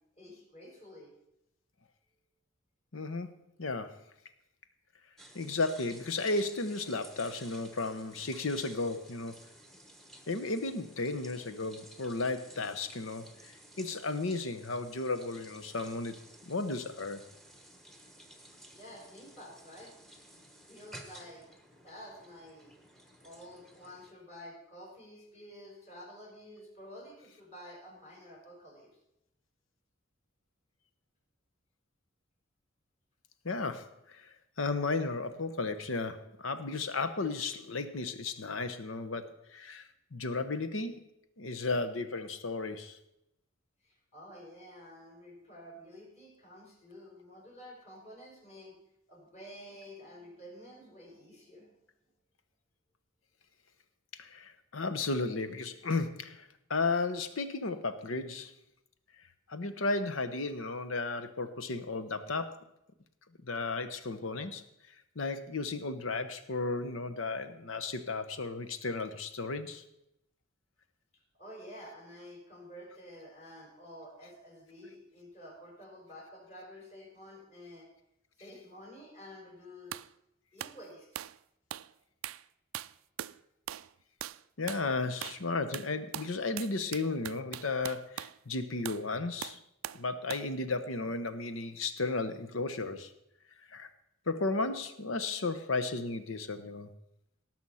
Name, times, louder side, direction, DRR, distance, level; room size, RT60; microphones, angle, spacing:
voice 1, 0.2-1.1 18.7-20.4 20.7-21.4 21.8-22.7 23.2-28.9 43.8-48.8 49.1-51.7 71.4-77.9 78.4-80.0 80.5-81.2, equal, 35° left, -3 dB, 5.1 m, -50 dB
voice 2, 2.9-3.3 3.6-4.0 5.3-9.4 10.3-17.2 33.4-41.1 41.4-43.0 54.2-58.5 59.5-62.7 63.4-64.6 65.2-69.8 84.6-89.6 89.9-93.1 93.7-93.9 94.3-96.9, left 3 dB, 80° left, 10 dB, 1.0 m, -34 dB
sound 1, 5.2-24.1, right 1 dB, ahead, 1.1 m, -54 dB
sound 2, 79.9-80.1 80.6-80.8 81.2-81.4 81.7-81.9 82.2-82.5 82.7-83.4 83.7-83.9 84.2-84.4 84.7-84.9 85.2-85.5 85.7-88.4 88.9-89.1 89.4-90.0 90.3-90.5, right 12 dB, 90° right, 0.3 m, -41 dB
18.0 x 6.2 x 5.6 m, 0.83 s
head